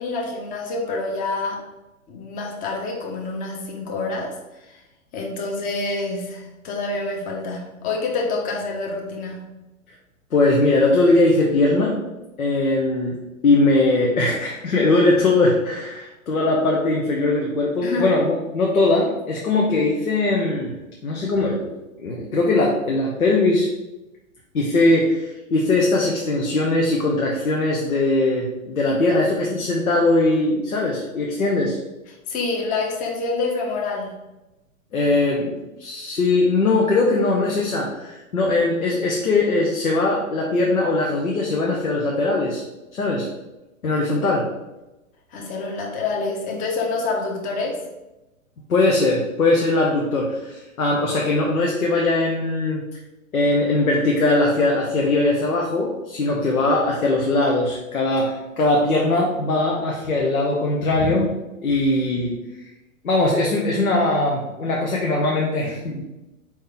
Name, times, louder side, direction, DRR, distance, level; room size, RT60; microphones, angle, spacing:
voice 1, 0.0-1.6 2.1-4.4 4.6-4.8 5.1-9.4 17.8-18.2 29.1-29.2 32.3-34.2 45.3-47.8, left 3 dB, 20° left, 1 dB, 0.7 m, -27 dB
voice 2, 10.3-11.9 12.4-13.2 13.4-20.7 21.0-21.7 22.0-23.7 24.5-31.8 34.9-35.5 35.8-42.6 42.9-43.3 43.8-44.5 48.7-52.8 53.3-61.3 61.6-62.4 63.0-66.0, left 2 dB, 80° left, -2 dB, 0.9 m, -20 dB
4.4 x 3.2 x 3.7 m, 1.0 s
figure-of-eight pair, 115°, 42 cm